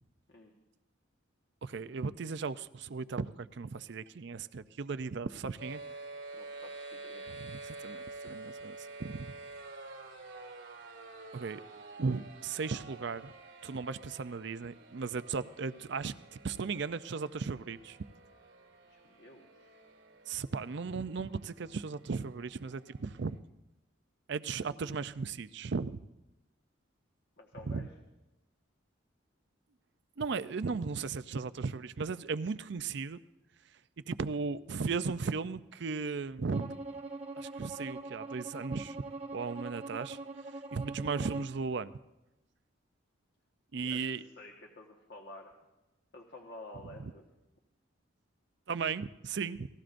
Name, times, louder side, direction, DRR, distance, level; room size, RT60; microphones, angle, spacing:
voice 1, 1.6-5.8 7.3-9.3 11.3-11.6 12.0-13.3 13.6-18.0 20.3-23.4 24.3-26.0 27.6-27.9 30.2-33.2 34.1-36.7 37.4-39.0 39.3-40.2 40.7-41.9 43.7-44.2 47.0-47.1 48.7-49.7, right 4 dB, 60° right, 14 dB, 0.5 m, -36 dB
sound 1, 5.6-23.4, right 3 dB, 80° right, 1.8 m, -49 dB
voice 2, 6.3-7.3 18.9-19.8 27.4-27.9 37.1-37.2 43.8-44.1 44.4-45.5 46.1-47.2, left 2 dB, 55° left, 0 dB, 1.4 m, -51 dB
Bowed string instrument, 36.5-41.6, right 3 dB, 35° right, 1.0 m, -43 dB
27.5 x 19.0 x 2.6 m, 0.97 s
head